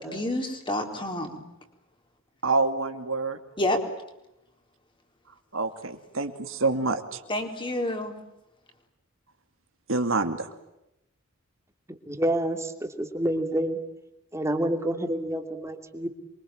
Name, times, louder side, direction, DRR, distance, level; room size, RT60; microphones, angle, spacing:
voice 1, 0.0-1.4 3.6-3.8 7.3-8.1, left 1 dB, 25° left, 4 dB, 4.1 m, -28 dB
voice 2, 2.4-3.4 5.5-7.0 9.9-10.5, right 3 dB, 75° right, 7 dB, 2.6 m, -26 dB
voice 3, 12.1-13.8 14.3-16.1, right 1 dB, 15° right, 6 dB, 2.8 m, -28 dB
27.5 x 24.0 x 8.9 m, 0.88 s
head